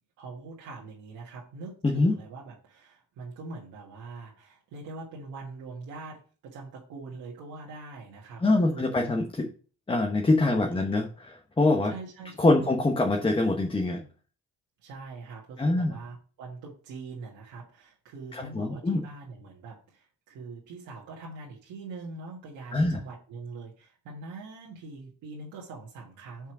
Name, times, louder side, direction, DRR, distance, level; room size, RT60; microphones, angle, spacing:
voice 1, 0.2-8.9 10.5-11.0 11.8-12.7 14.8-26.5, right 3 dB, 90° right, -4 dB, 1.7 m, -43 dB
voice 2, 8.4-9.5 9.9-11.9 12.4-14.0 15.6-15.9 18.3-19.0 22.7-23.0, left 2 dB, 15° left, 3 dB, 1.0 m, -24 dB
5.5 x 4.8 x 6.1 m, 0.39 s
cardioid pair, 90°, 30 cm